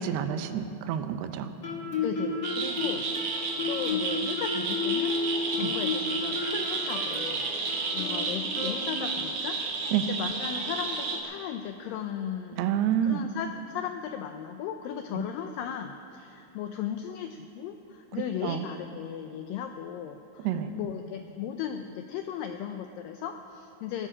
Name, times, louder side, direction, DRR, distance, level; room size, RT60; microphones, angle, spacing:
voice 1, 0.0-1.5 5.6-5.7 9.9-10.1 12.6-13.2 15.1-15.2 18.4-18.7 20.4-20.7, right 9 dB, 90° right, 9 dB, 2.8 m, -28 dB
Guitar, 1.6-9.3, left 4 dB, 60° left, 1.0 m, -33 dB
voice 2, 2.0-3.1 3.3-5.2 5.6-7.5 7.9-9.6 10.1-24.1, left 9 dB, 90° left, 6 dB, 2.0 m, -36 dB
sound 1, 2.4-11.2, right 4 dB, 60° right, 2.5 m, -32 dB
17.5 x 13.0 x 5.0 m, 2.7 s
omnidirectional pair, 4.6 m